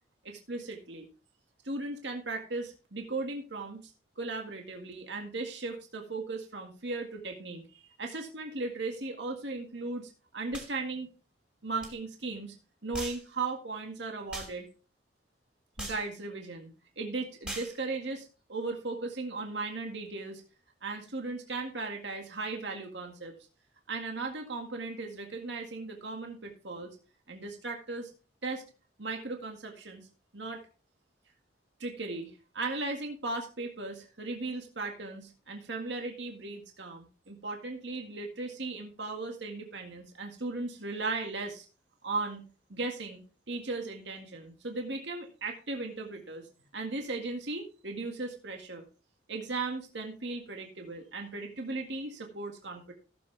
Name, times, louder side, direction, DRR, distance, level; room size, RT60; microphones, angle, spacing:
voice 1, 0.2-1.1 1.6-11.1 11.6-12.5 12.8-14.7 15.8-20.4 20.8-23.3 23.9-27.0 27.3-28.1 28.4-28.6 29.0-30.0 30.3-30.6 31.8-41.7 42.0-42.4 42.7-43.2 43.5-46.5 46.7-48.8 49.3-52.9, right 3 dB, 70° right, 3 dB, 1.9 m, -37 dB
sound 1, 10.5-10.7 11.8-11.9 12.9-13.2 14.3-14.5 15.8-16.0 17.4-17.7, right 1 dB, 5° right, 2.8 m, -39 dB
16.0 x 7.5 x 3.4 m, 0.35 s
head